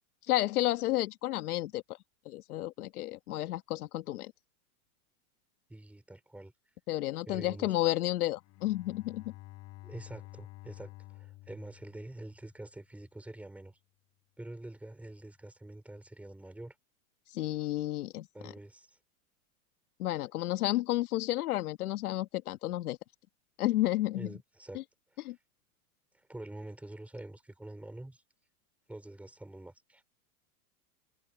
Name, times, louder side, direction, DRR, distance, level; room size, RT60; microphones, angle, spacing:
voice 1, 0.3-1.8 2.2-4.3 6.9-9.2 17.3-18.5 20.0-23.0 23.6-24.3 25.2-25.3, left 16 dB, 85° left, 1.4 m, -31 dB
voice 2, 5.7-6.5 7.3-7.8 9.8-13.8 14.4-16.8 18.3-19.0 24.1-24.8 25.1-25.3 26.1-28.2 28.9-30.0, right 1 dB, 5° right, 3.9 m, -46 dB
Bowed string instrument, 8.4-12.7, left 17 dB, 35° left, 4.2 m, -51 dB
supercardioid pair, 145°, 43 cm